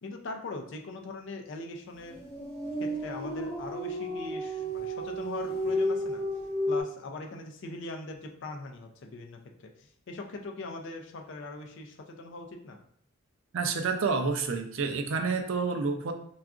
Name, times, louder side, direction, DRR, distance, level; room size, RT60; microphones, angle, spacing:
voice 1, 0.0-2.2 2.8-6.2 6.7-12.8, left 2 dB, 55° left, 3 dB, 0.4 m, -41 dB
sound 1, 2.0-6.8, equal, 25° left, 1.0 m, -32 dB
voice 2, 13.5-16.1, right 4 dB, 60° right, 5 dB, 0.4 m, -29 dB
3.7 x 2.3 x 2.4 m, 0.65 s
head